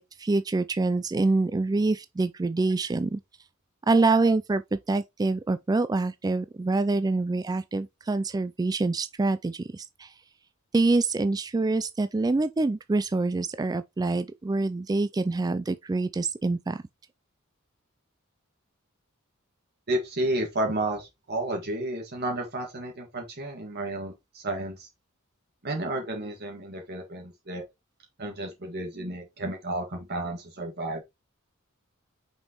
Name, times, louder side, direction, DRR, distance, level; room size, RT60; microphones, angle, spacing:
voice 1, 0.0-3.2 3.9-10.1 10.7-16.8, right 3 dB, 20° right, 0.3 m, -26 dB
voice 2, 19.9-24.9 25.6-27.6 28.2-31.0, right 1 dB, 50° right, 1.8 m, -32 dB
6.1 x 5.3 x 3.0 m
head